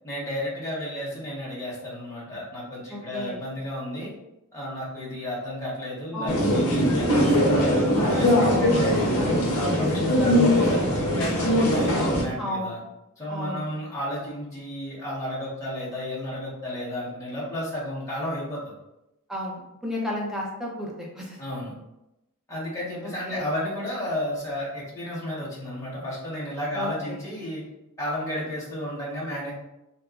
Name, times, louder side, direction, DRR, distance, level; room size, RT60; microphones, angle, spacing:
voice 1, 0.0-4.1 4.5-9.1 9.5-12.8 13.2-18.7 21.4-21.7 22.5-27.6 28.0-29.5, left 1 dB, 15° left, -8 dB, 0.8 m, -32 dB
voice 2, 2.9-3.4 6.1-6.6 12.4-12.8 13.3-13.7 19.3-21.4 23.0-23.4 26.7-27.2, left 1 dB, ahead, -2 dB, 0.4 m, -33 dB
sound 1, 6.3-12.2, equal, 70° left, 0.7 m, -21 dB
2.8 x 2.3 x 2.3 m, 0.92 s
head